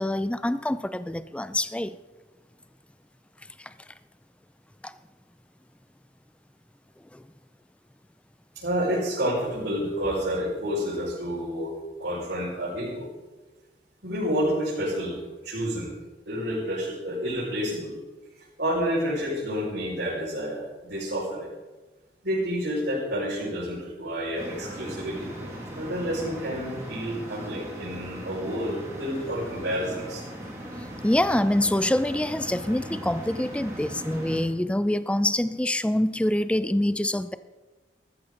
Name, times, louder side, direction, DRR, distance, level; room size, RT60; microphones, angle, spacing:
voice 1, 0.0-2.0 3.6-3.7 4.8-4.9 7.1-7.3 30.8-37.3, left 1 dB, 5° left, 14 dB, 0.4 m, -26 dB
voice 2, 8.5-11.7 12.0-13.1 14.0-15.2 15.4-15.9 16.3-17.9 18.6-21.5 22.2-25.3 25.7-30.2, equal, 75° right, -10 dB, 5.3 m, -29 dB
sound 1, 24.3-34.4, equal, 15° right, 2.7 m, -38 dB
14.0 x 13.5 x 3.9 m, 1.2 s
head